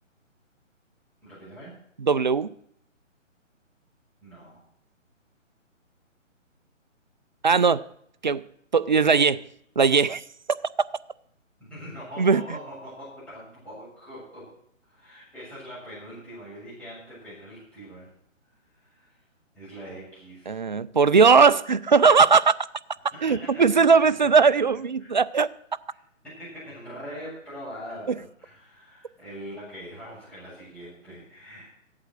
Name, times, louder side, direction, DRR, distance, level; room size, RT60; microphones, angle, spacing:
voice 1, 1.2-1.8 4.2-4.6 11.6-14.5 14.9-18.1 18.4-19.2 19.5-20.6 23.1-24.3 25.0-25.2 26.2-31.8, equal, 5° left, 7.4 m, -42 dB
voice 2, 2.0-2.5 7.4-7.8 8.2-8.4 8.7-9.4 9.8-10.2 12.2-12.4 20.5-22.5 23.2-25.5, right 5 dB, 40° right, 0.4 m, -19 dB
15.5 x 8.4 x 6.4 m
hypercardioid pair, 150°, 39 cm